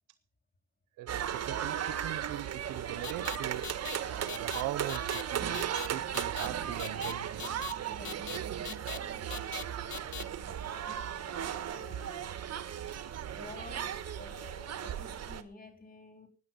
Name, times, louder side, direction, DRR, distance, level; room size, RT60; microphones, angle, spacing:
voice 1, 1.0-7.5 8.3-9.5, right 14 dB, 90° right, 0.8 m, -42 dB
sound 1, 1.1-15.4, right 9 dB, 55° right, 1.5 m, -36 dB
sound 2, 3.0-3.4 3.6-4.0 4.3-4.6 4.9-5.2 5.5-5.9 6.1-6.5 6.8-7.1 7.4-7.7 8.0-8.4 8.7-9.0 9.3-9.6 9.9-10.2, left 14 dB, 65° left, 0.7 m, -40 dB
voice 2, 7.9-8.3 10.1-10.8 11.6-12.4 13.3-16.3, left 3 dB, 30° left, 3.5 m, -51 dB
17.5 x 10.0 x 5.3 m
cardioid pair, 90°, 30 cm